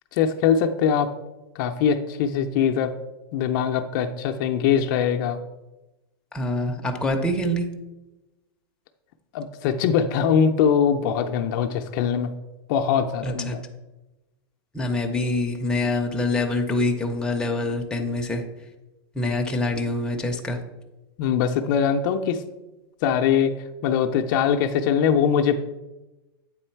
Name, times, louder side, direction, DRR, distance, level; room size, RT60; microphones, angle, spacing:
voice 1, 0.1-1.1 1.6-2.9 3.3-5.4 9.3-12.3 12.7-13.6 21.2-22.4 23.0-23.5 23.8-25.6, left 7 dB, 50° left, 5 dB, 0.5 m, -22 dB
voice 2, 6.3-7.7 13.2-13.6 14.7-18.4 19.1-20.6, left 2 dB, 5° left, 2 dB, 0.6 m, -25 dB
8.4 x 3.7 x 4.5 m, 1.0 s
supercardioid pair, 145°, 13 cm